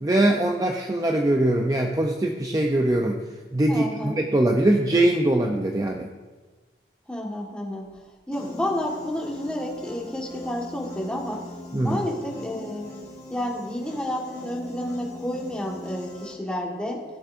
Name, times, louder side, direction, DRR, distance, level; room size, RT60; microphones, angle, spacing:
voice 1, 0.0-3.2 3.5-6.1 11.7-12.0, right 1 dB, 20° right, 2 dB, 0.5 m, -22 dB
voice 2, 3.7-4.2 7.1-11.4 11.8-17.0, left 1 dB, 5° left, -2 dB, 1.5 m, -30 dB
Piano, 8.3-16.3, left 2 dB, 20° left, 3.2 m, -41 dB
16.0 x 8.3 x 2.6 m, 1.3 s
head